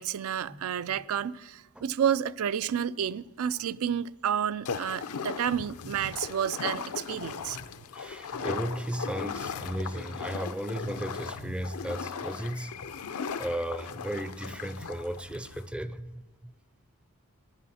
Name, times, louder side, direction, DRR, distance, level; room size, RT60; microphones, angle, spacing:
voice 1, 0.0-7.6, right 8 dB, 65° right, 0.4 m, -30 dB
sound 1, 4.7-15.7, left 6 dB, 80° left, 0.6 m, -38 dB
voice 2, 7.9-12.7 13.4-16.2, right 1 dB, 5° right, 0.5 m, -35 dB
15.0 x 11.0 x 4.2 m
head